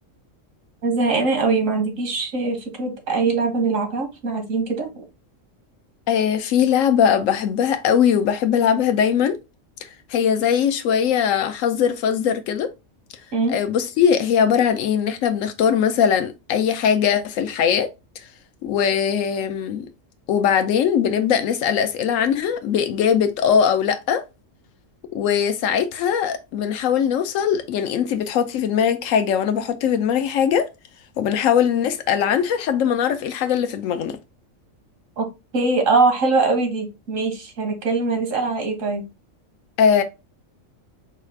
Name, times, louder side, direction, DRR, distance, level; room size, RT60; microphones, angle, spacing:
voice 1, 0.8-5.1 13.3-13.6 35.2-35.3 35.5-39.0, right 3 dB, 85° right, 1.8 m, -22 dB
voice 2, 6.1-9.4 10.1-12.7 13.5-17.9 18.6-19.9 20.3-24.2 25.1-30.7 31.2-34.2 39.8-40.0, left 8 dB, 85° left, 1.0 m, -20 dB
4.8 x 2.4 x 4.4 m
omnidirectional pair, 1.3 m